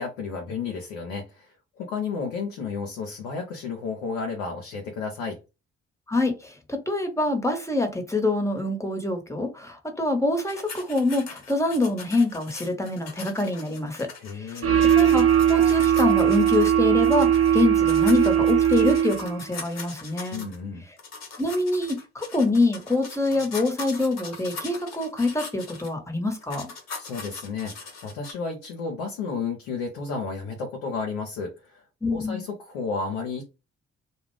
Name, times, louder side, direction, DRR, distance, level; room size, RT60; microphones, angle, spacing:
voice 1, 0.0-5.4 14.2-14.8 20.3-20.8 27.0-31.8 32.1-33.4, left 5 dB, 90° left, 2 dB, 0.6 m, -32 dB
voice 2, 6.1-14.7 14.9-20.5 21.4-26.7 32.0-32.4, left 2 dB, 10° left, 4 dB, 1.0 m, -25 dB
sound 1, 10.5-16.8 17.0-20.6 21.0-25.9 26.4-28.3, left 4 dB, 55° left, 1.0 m, -41 dB
sound 2, 14.6-19.5, right 9 dB, 45° right, 0.7 m, -19 dB
sound 3, 14.8-19.4, right 9 dB, 85° right, 0.7 m, -41 dB
2.3 x 2.1 x 3.1 m, 0.28 s
hypercardioid pair, 45°, 31 cm